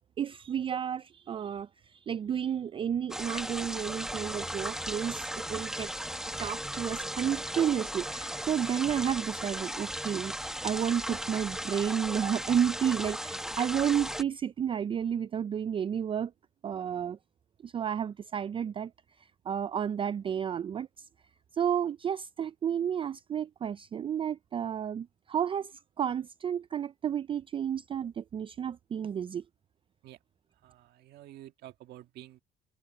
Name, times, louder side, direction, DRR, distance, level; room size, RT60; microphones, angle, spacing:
voice 1, 0.2-5.9 6.4-10.3 10.6-16.3 16.6-17.2 17.6-18.9 19.2-21.1 21.5-25.7 26.0-29.4, right 8 dB, 30° right, 0.4 m, -31 dB
sound 1, 3.1-14.2, equal, 5° right, 1.6 m, -36 dB
voice 2, 30.6-32.4, right 13 dB, 75° right, 1.7 m, -50 dB
cardioid pair, 110°, 17 cm